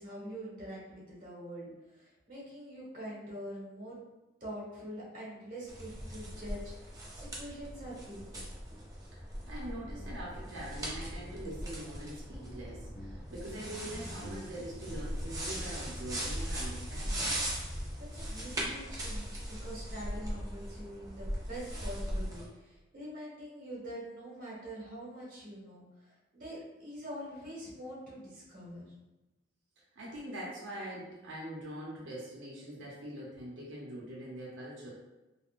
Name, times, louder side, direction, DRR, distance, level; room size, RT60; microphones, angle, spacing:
voice 1, 0.0-4.0 4.4-8.5 18.0-28.9, equal, 45° right, -6 dB, 1.2 m, -45 dB
sound 1, 5.7-22.4, equal, 20° right, 0.5 m, -39 dB
Guitar, 9.3-17.8, left 1 dB, 40° left, 0.4 m, -53 dB
voice 2, 9.5-17.4 29.9-34.9, right 1 dB, 90° right, -5 dB, 0.7 m, -43 dB
3.6 x 2.1 x 2.4 m, 1.1 s
head